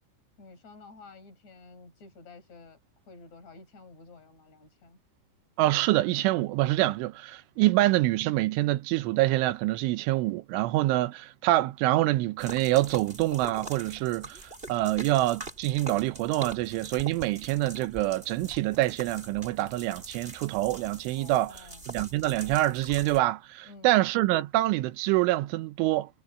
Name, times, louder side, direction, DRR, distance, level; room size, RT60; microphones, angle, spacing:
voice 1, 0.4-2.8 3.1-5.0 21.2-21.8 23.6-24.0, left 3 dB, 35° left, 5.9 m, -51 dB
voice 2, 5.6-14.4 14.7-26.1, right 17 dB, 80° right, 3.1 m, -26 dB
sound 1, 12.4-23.2, right 2 dB, 15° right, 2.2 m, -43 dB
omnidirectional pair, 5.9 m